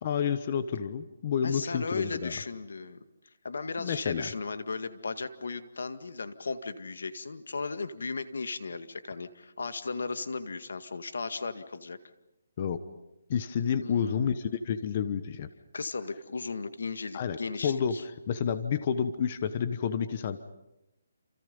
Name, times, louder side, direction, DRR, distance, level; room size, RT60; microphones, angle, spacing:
voice 1, 0.0-2.4 3.8-4.3 12.6-12.8 13.3-15.5 17.1-17.4 17.6-18.0 18.3-20.4, left 7 dB, 35° left, 11 dB, 1.2 m, -29 dB
voice 2, 1.4-3.0 3.4-12.0 13.8-14.3 15.7-18.0, left 4 dB, 80° left, 10 dB, 1.9 m, -36 dB
29.0 x 28.0 x 5.5 m, 0.91 s
hypercardioid pair, 170°, 0 cm